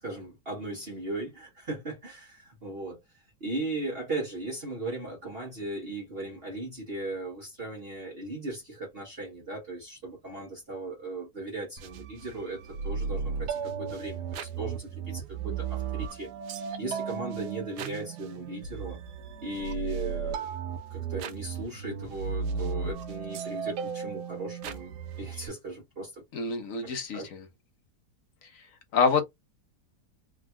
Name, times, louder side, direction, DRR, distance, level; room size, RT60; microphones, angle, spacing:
voice 1, 0.0-3.0 3.4-16.3 16.8-19.0 19.4-20.5 20.9-26.2 26.8-27.3, right 2 dB, 40° right, 1.2 m, -37 dB
sound 1, 11.8-25.5, right 6 dB, 85° right, 1.2 m, -35 dB
voice 2, 26.3-27.4 28.9-29.2, left 5 dB, 60° left, 1.3 m, -26 dB
3.6 x 2.7 x 2.2 m
omnidirectional pair, 1.7 m